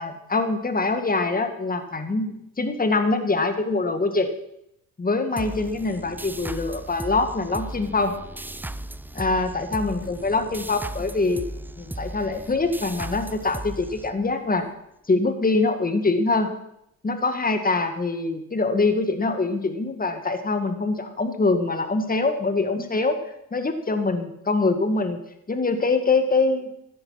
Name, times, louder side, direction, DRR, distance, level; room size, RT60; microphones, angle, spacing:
voice 1, 0.0-4.3 5.0-8.1 9.1-11.5 11.8-14.7 15.1-16.5 17.0-23.2 23.5-25.2 25.5-26.7, left 3 dB, 20° left, 8 dB, 2.0 m, -24 dB
sound 1, 5.4-14.6, right 1 dB, 5° right, 0.6 m, -36 dB
14.5 x 9.9 x 5.8 m, 0.79 s
supercardioid pair, 70°, 39 cm